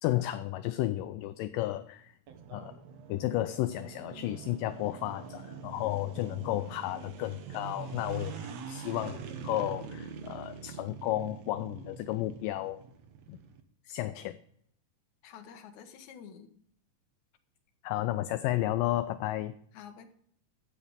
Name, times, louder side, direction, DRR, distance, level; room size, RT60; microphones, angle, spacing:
voice 1, 0.0-2.1 2.5-2.8 3.1-12.8 13.3-13.4 13.9-14.4 17.8-19.5, left 15 dB, 80° left, 11 dB, 2.1 m, -33 dB
sound 1, 2.3-13.6, right 6 dB, 60° right, 1.8 m, -44 dB
voice 2, 15.2-16.5 19.7-20.1, left 8 dB, 65° left, 6 dB, 2.3 m, -49 dB
12.5 x 8.6 x 5.1 m, 0.66 s
omnidirectional pair, 4.1 m